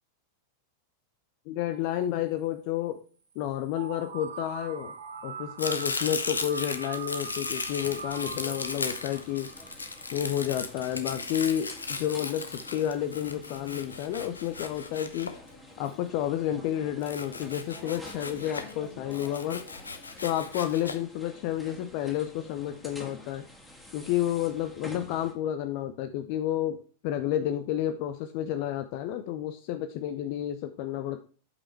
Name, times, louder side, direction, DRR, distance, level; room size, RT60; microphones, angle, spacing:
voice 1, 1.5-3.0 3.4-4.9 5.2-9.5 10.1-15.3 15.8-19.6 20.2-23.4 23.9-31.2, left 11 dB, 45° left, 9 dB, 0.6 m, -30 dB
sound 1, 3.7-10.5, right 5 dB, 65° right, 1.4 m, -42 dB
Domestic sounds home sounds, 5.6-15.9 17.0-18.8 19.1-20.9, left 4 dB, 75° left, 0.9 m, -36 dB
sound 2, 7.7-25.3, left 1 dB, 5° left, 2.1 m, -49 dB
8.3 x 5.5 x 4.4 m, 0.38 s
figure-of-eight pair, 90°, 0 cm